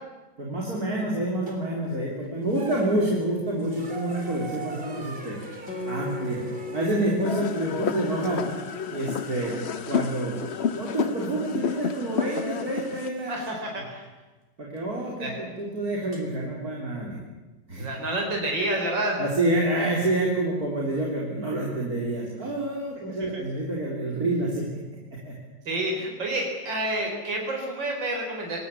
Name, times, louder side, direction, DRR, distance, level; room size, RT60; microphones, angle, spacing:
voice 1, 0.4-5.4 5.9-6.4 6.7-8.5 8.9-10.4 10.8-13.3 14.6-17.2 17.7-17.8 19.2-24.8 25.2-25.3, right 1 dB, 55° right, -3 dB, 4.0 m, -28 dB
sound 1, 1.5-1.9 2.4-13.6 14.8-14.9 16.1-16.2, right 2 dB, 30° right, 3.8 m, -44 dB
Guitar, 5.7-10.6, left 4 dB, 65° left, 4.0 m, -39 dB
sound 2, 7.2-13.1, left 6 dB, 45° left, 1.0 m, -30 dB
voice 2, 13.3-14.0 15.2-15.4 17.8-19.2 25.7-28.6, right 1 dB, 90° right, 1 dB, 4.7 m, -29 dB
25.0 x 19.5 x 8.4 m, 1.2 s
omnidirectional pair, 2.0 m